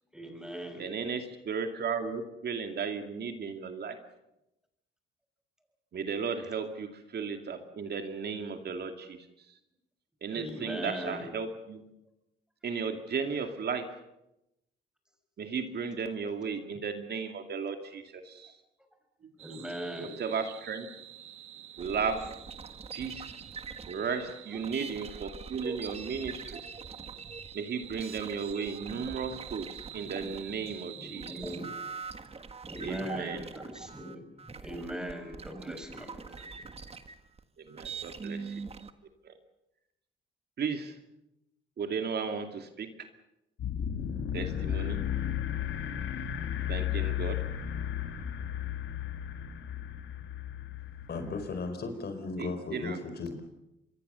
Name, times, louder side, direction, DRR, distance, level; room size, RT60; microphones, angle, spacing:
voice 1, 0.1-0.9 10.3-11.3 19.4-20.2 30.9-31.9 32.7-36.4, equal, 5° right, 5 dB, 6.1 m, -40 dB
voice 2, 0.8-4.0 5.9-9.3 10.2-11.8 12.6-13.9 15.4-18.6 19.2-19.3 20.0-20.9 21.8-22.3 22.9-23.4 23.9-26.6 27.5-31.3 32.8-33.5 37.6-38.5 39.2-39.3 40.6-41.0 41.8-43.1 44.3-45.0 46.7-47.4 52.4-53.0, right 5 dB, 55° right, 6 dB, 2.4 m, -35 dB
sound 1, 19.4-31.6, right 12 dB, 90° right, 2.0 m, -48 dB
sound 2, 21.8-30.8 31.1-38.9, right 5 dB, 30° right, 1.7 m, -43 dB
sound 3, 43.6-51.7, left 10 dB, 75° left, 2.3 m, -34 dB
voice 3, 51.1-53.4, left 3 dB, 55° left, 8 dB, 4.7 m, -36 dB
26.0 x 22.5 x 6.9 m, 0.88 s
cardioid pair, 90°, 20 cm